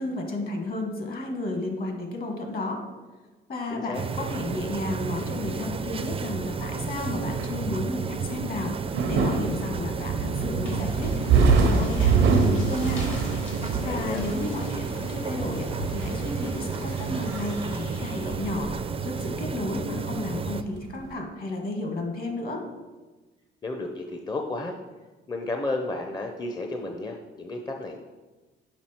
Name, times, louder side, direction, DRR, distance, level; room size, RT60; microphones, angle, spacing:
voice 1, 0.0-2.8 3.5-8.7 9.1-13.0 13.8-18.7 19.0-22.6, left 2 dB, 50° left, 3 dB, 1.5 m, -32 dB
voice 2, 3.7-4.0 13.8-14.2 23.6-24.8 25.3-28.0, left 2 dB, 20° left, 3 dB, 0.6 m, -32 dB
sound 1, 3.9-20.6, right 5 dB, 30° right, 0.4 m, -32 dB
sound 2, 4.2-20.1 20.4-21.1, right 4 dB, 85° right, 0.8 m, -27 dB
sound 3, 10.3-18.7, left 2 dB, 90° left, 1.5 m, -41 dB
6.1 x 5.0 x 4.4 m, 1.2 s
cardioid pair, 90°, 20 cm